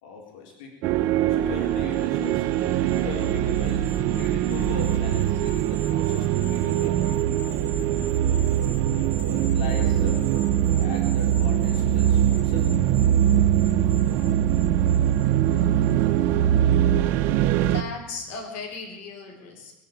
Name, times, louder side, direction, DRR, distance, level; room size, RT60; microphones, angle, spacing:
voice 1, 0.0-2.5 2.9-7.0 7.5-7.6 9.3-10.5 10.8-12.8, left 6 dB, 85° left, 1 dB, 3.9 m, -39 dB
sound 1, 0.8-17.8, right 11 dB, 55° right, 0.9 m, -22 dB
sound 2, 1.6-16.2 16.6-16.7, equal, 15° left, 5.3 m, -44 dB
voice 2, 17.7-19.8, left 4 dB, 55° left, 1 dB, 4.0 m, -36 dB
21.5 x 7.6 x 8.6 m, 0.89 s
cardioid pair, 140°, 4 cm